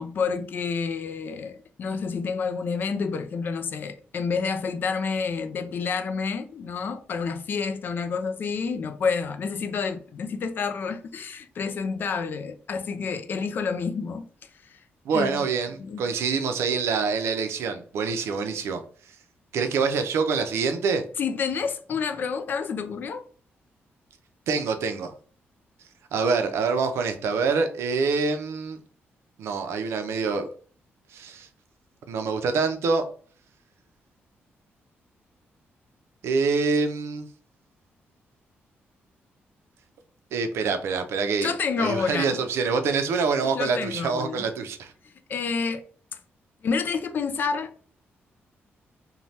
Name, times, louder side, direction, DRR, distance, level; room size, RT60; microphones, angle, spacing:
voice 1, 0.0-14.3 14.7-14.8 15.1-15.4 15.8-16.0 21.2-23.3 41.4-42.4 43.5-44.5 45.0-45.8 46.6-47.7, left 5 dB, 50° left, 0.4 m, -29 dB
voice 2, 15.0-18.8 19.5-21.0 24.5-25.1 26.1-28.8 29.4-30.5 31.1-31.5 32.1-33.0 36.2-37.3 40.3-41.5 41.8-44.9, right 5 dB, 85° right, 0.5 m, -25 dB
3.1 x 2.2 x 2.7 m
wide cardioid pair, 150°, 4 cm